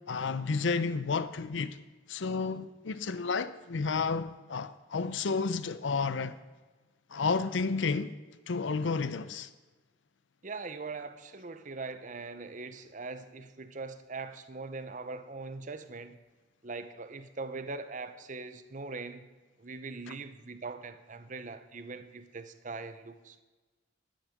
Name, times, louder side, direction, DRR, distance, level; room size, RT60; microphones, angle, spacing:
voice 1, 0.0-1.8 2.1-6.4 7.1-8.1 8.5-9.5, left 4 dB, 80° left, 0.6 m, -31 dB
voice 2, 10.4-16.2 16.6-19.3 19.6-23.4, right 3 dB, 40° right, 0.8 m, -41 dB
12.0 x 10.0 x 5.1 m
head